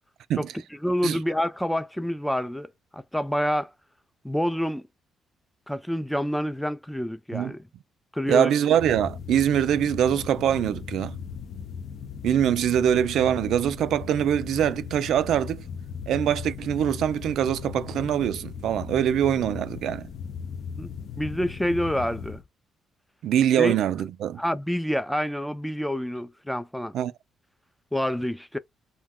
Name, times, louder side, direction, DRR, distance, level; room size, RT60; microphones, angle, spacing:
voice 1, 0.4-3.7 4.2-4.8 5.7-7.6 8.1-8.5 20.8-22.4 23.6-23.8 24.4-27.0 27.9-28.6, equal, 5° left, 0.3 m, -28 dB
voice 2, 8.3-11.2 12.2-15.6 16.1-20.1 23.2-24.4 26.9-27.1, right 10 dB, 75° right, 0.3 m, -23 dB
sound 1, 8.7-22.4, left 6 dB, 65° left, 0.5 m, -37 dB
2.2 x 2.2 x 3.5 m
cardioid pair, 90°, 0 cm